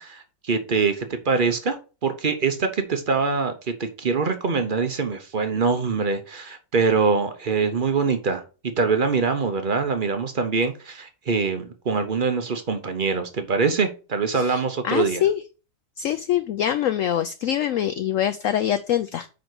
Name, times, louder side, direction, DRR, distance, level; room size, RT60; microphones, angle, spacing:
voice 1, 0.0-1.8 2.0-3.5 3.8-8.4 8.8-15.2, right 4 dB, 45° right, 8 dB, 0.7 m, -24 dB
voice 2, 14.3-15.4 16.0-19.3, left 10 dB, 75° left, 11 dB, 0.7 m, -24 dB
5.1 x 4.9 x 6.1 m, 0.34 s
omnidirectional pair, 1.9 m